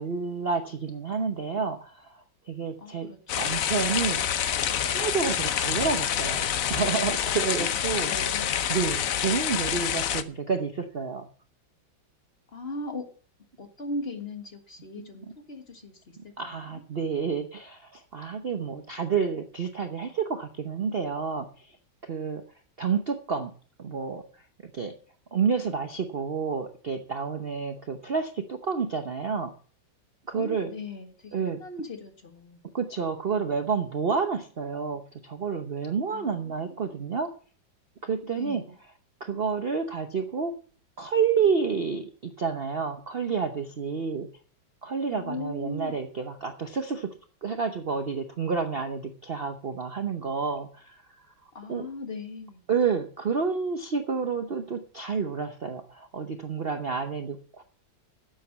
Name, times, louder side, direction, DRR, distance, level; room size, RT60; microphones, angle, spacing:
voice 1, 0.0-3.1 3.4-4.3 4.8-8.1 8.7-11.3 16.2-21.8 22.0-22.4 22.8-23.5 23.8-24.3 24.6-25.0 25.3-29.5 30.3-30.7 31.3-31.6 32.7-37.3 38.0-38.6 39.2-40.5 41.0-44.3 44.8-47.1 47.4-51.3 51.7-51.9 52.7-57.6, right 5 dB, 45° right, 7 dB, 0.8 m, -29 dB
voice 2, 2.8-3.6 7.6-7.7 8.0-8.6 12.5-13.1 13.6-16.8 30.3-32.6 36.1-37.0 38.2-38.8 45.1-46.0 51.5-52.6, left 2 dB, 35° left, 6 dB, 1.6 m, -39 dB
sound 1, 3.3-10.2, left 9 dB, 60° left, 1.0 m, -27 dB
11.5 x 7.8 x 7.2 m, 0.43 s
omnidirectional pair, 2.0 m